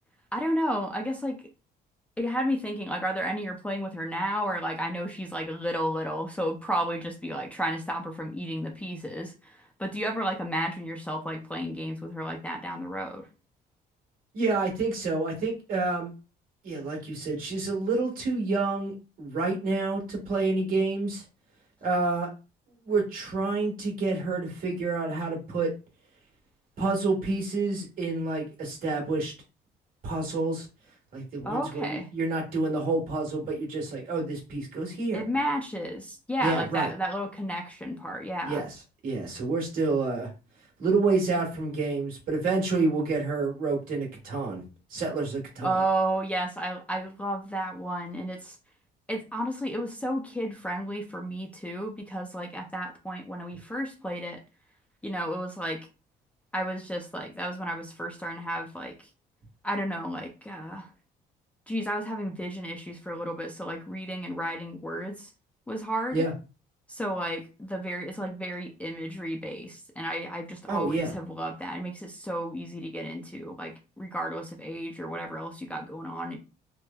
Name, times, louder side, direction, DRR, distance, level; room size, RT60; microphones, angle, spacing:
voice 1, 0.3-1.4 2.2-13.3 31.4-32.1 35.1-38.6 45.6-48.6 49.1-54.4 55.0-55.9 56.5-58.9 59.6-60.9 61.7-65.3 65.7-66.2 66.9-76.4, right 1 dB, 10° left, 3 dB, 0.4 m, -32 dB
voice 2, 14.3-16.1 16.6-18.9 19.2-21.2 21.8-22.3 22.9-25.7 26.8-29.3 30.0-30.7 31.1-35.2 36.4-36.9 38.5-38.7 39.0-40.3 40.8-44.6 44.9-45.8 66.1-66.3 70.7-71.1, right 3 dB, 55° right, -1 dB, 1.3 m, -28 dB
3.1 x 2.0 x 2.2 m, 0.31 s
cardioid pair, 110°, 17 cm